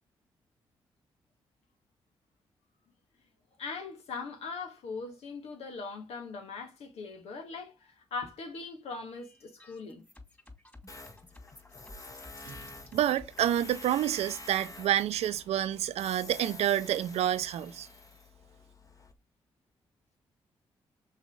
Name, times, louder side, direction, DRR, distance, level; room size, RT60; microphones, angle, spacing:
voice 1, 3.6-10.0, left 4 dB, 75° left, 1.7 m, -40 dB
sound 1, 9.1-13.4, left 1 dB, 15° left, 3.1 m, -53 dB
Tools, 10.9-19.1, left 2 dB, 30° left, 1.5 m, -48 dB
voice 2, 12.9-17.9, right 11 dB, 75° right, 0.6 m, -28 dB
5.5 x 4.3 x 4.9 m
hypercardioid pair, 45°, 11 cm